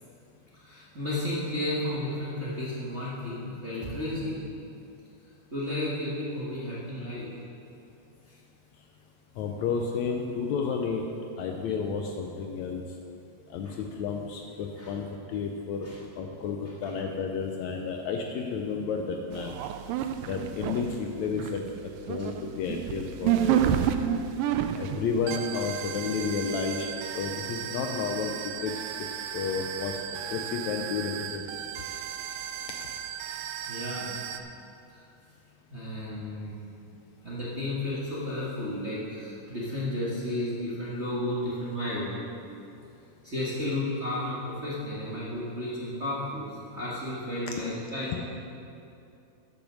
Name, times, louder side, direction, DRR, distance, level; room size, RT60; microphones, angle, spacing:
voice 1, 0.5-4.4 5.5-7.3 8.3-8.4 13.6-13.7 14.8-14.9 15.8-16.0 16.8-16.9 20.0-20.1 22.2-22.3 23.4-23.5 33.6-34.1 34.9-35.0 35.7-36.5 37.2-42.1 43.2-48.2, left 1 dB, 35° right, -9 dB, 1.1 m, -33 dB
voice 2, 9.4-11.0 11.4-12.8 13.5-15.9 16.2-19.5 20.3-21.6 22.1-23.7 24.8-26.9 27.1-28.3 28.6-28.7 29.3-30.0 30.3-31.6, left 5 dB, 80° left, 3 dB, 1.7 m, -31 dB
sound 1, 19.3-21.0 21.2-34.4, right 9 dB, 90° right, 2.2 m, -32 dB
10.5 x 7.1 x 6.3 m, 2.7 s
omnidirectional pair, 3.8 m